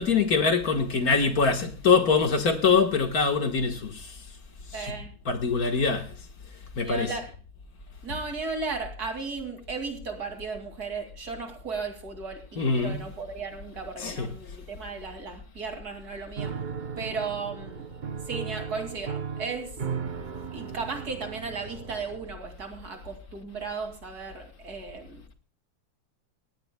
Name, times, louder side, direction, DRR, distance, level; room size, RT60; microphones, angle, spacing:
voice 1, 0.0-4.3 4.7-5.0 5.3-6.1 6.8-7.2 12.6-13.1 14.0-14.3, left 5 dB, 55° left, 1.8 m, -24 dB
voice 2, 4.7-5.1 6.8-7.3 8.0-16.6 17.0-17.9 18.3-19.8 20.5-25.4, right 4 dB, 55° right, 3.0 m, -35 dB
Piano, 16.4-22.3, right 6 dB, 80° right, 0.4 m, -36 dB
19.5 x 16.5 x 2.2 m
omnidirectional pair, 2.0 m